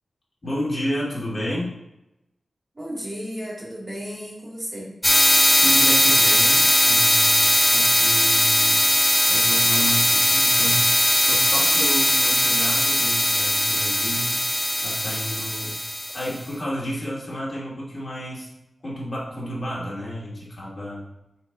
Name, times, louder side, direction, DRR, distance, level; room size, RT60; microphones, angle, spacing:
voice 1, 0.4-1.7 5.3-8.8 9.3-14.4 14.8-15.8 16.1-18.5 18.8-21.0, equal, 40° left, -7 dB, 2.6 m, -31 dB
voice 2, 2.7-4.9, equal, 35° right, -5 dB, 2.3 m, -34 dB
sound 1, 5.0-16.3, equal, 5° left, 0.7 m, -19 dB
6.0 x 4.3 x 4.9 m, 0.90 s
wide cardioid pair, 100°, 0 cm